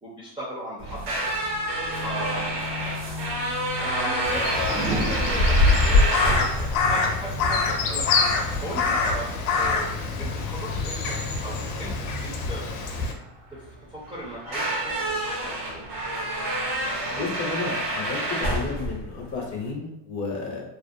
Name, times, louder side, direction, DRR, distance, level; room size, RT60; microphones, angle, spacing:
voice 1, 0.0-1.2 2.0-2.5 3.8-6.0 6.4-8.1 8.6-9.9 10.2-12.7 13.5-15.9, equal, 15° right, -7 dB, 0.3 m, -37 dB
sound 1, 0.8-19.7, right 1 dB, 90° right, 0.9 m, -29 dB
sound 2, 3.3-3.4 4.7-7.8 9.3-9.6, right 2 dB, 60° right, 0.6 m, -35 dB
Crow, 4.2-13.1, left 3 dB, 80° left, 0.6 m, -24 dB
voice 2, 17.0-20.6, left 4 dB, 40° left, 0 dB, 0.6 m, -32 dB
2.4 x 2.1 x 2.6 m, 0.86 s
cardioid pair, 140°, 49 cm